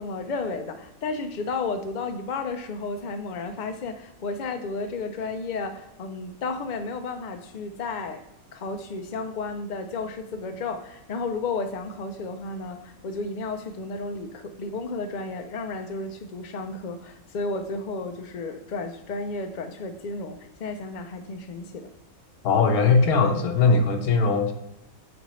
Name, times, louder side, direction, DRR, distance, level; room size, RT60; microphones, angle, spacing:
voice 1, 0.0-8.2 8.5-21.9, left 3 dB, 55° left, 0.5 m, -32 dB
voice 2, 22.4-24.5, left 4 dB, 90° left, 1.3 m, -20 dB
7.9 x 3.9 x 3.1 m
omnidirectional pair, 1.5 m